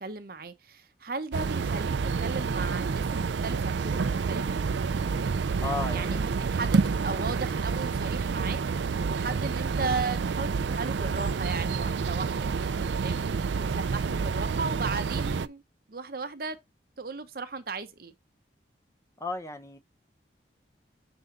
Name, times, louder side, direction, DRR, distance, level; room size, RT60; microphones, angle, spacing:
voice 1, 0.0-4.6 5.9-13.2 13.6-15.6 15.9-16.6 17.0-18.1, right 4 dB, 55° right, 0.9 m, -36 dB
sound 1, 1.3-15.5, right 5 dB, 80° right, 0.4 m, -28 dB
voice 2, 5.6-6.2 19.2-19.8, left 3 dB, 15° left, 0.7 m, -35 dB
7.0 x 3.8 x 3.8 m
head